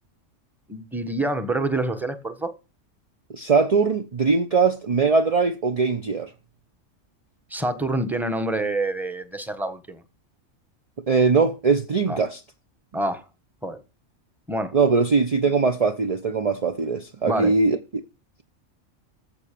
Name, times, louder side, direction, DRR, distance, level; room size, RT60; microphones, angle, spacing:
voice 1, 0.7-2.5 7.5-10.0 12.1-12.2 12.9-13.2 13.6-13.8 14.5-14.8 17.3-17.5, right 2 dB, ahead, 1.2 m, -27 dB
voice 2, 3.3-6.3 11.1-12.4 14.7-17.8, right 4 dB, 35° right, 0.7 m, -21 dB
15.0 x 5.7 x 6.8 m
omnidirectional pair, 1.3 m